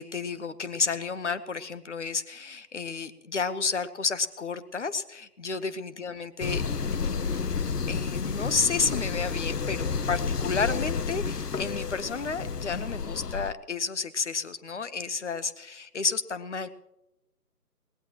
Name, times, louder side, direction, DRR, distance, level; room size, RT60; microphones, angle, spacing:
voice 1, 0.0-6.6 6.9-7.4 7.9-16.7, left 5 dB, 45° left, 13 dB, 1.1 m, -31 dB
sound 1, 6.4-13.5, left 5 dB, 80° left, 0.9 m, -30 dB
21.5 x 19.0 x 3.0 m, 0.91 s
figure-of-eight pair, 160°, 47 cm